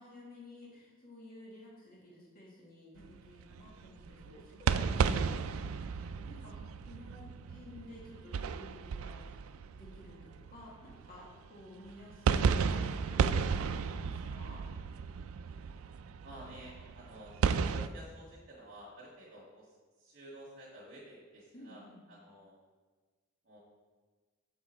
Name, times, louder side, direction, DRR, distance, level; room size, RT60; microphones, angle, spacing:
voice 1, 0.0-9.4 9.7-14.7 21.5-22.0, left 1 dB, 45° left, -5 dB, 1.8 m, -53 dB
sound 1, 3.0-11.4 11.8-17.9, right 6 dB, 85° right, 0.4 m, -33 dB
voice 2, 16.2-17.4 17.7-22.5 23.4-23.6, right 1 dB, 50° right, -5 dB, 1.7 m, -52 dB
7.2 x 6.3 x 4.3 m, 1.4 s
head